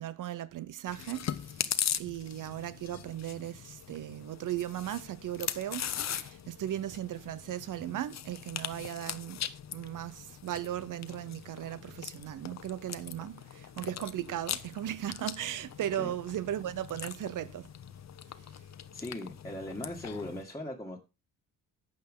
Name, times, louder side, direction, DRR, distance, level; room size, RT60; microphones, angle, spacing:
voice 1, 0.0-1.7 2.0-9.4 9.7-17.7, right 12 dB, 70° right, 0.8 m, -37 dB
Chewing mastication, 0.9-20.4, left 9 dB, 55° left, 0.9 m, -40 dB
voice 2, 18.9-21.0, left 1 dB, 10° left, 1.9 m, -39 dB
11.5 x 8.0 x 3.7 m
cardioid pair, 105°, 32 cm